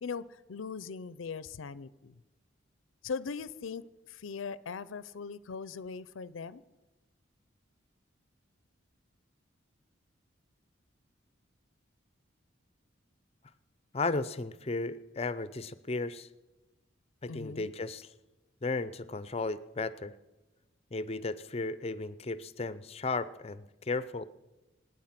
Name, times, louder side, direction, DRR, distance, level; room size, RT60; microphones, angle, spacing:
voice 1, 0.0-2.1 3.0-6.6 17.3-17.7, left 5 dB, 85° left, 17 dB, 0.5 m, -40 dB
voice 2, 13.9-16.3 17.2-18.1 18.6-20.1 20.9-24.2, left 3 dB, 30° left, 15 dB, 0.5 m, -35 dB
26.0 x 9.5 x 5.9 m, 1.1 s
head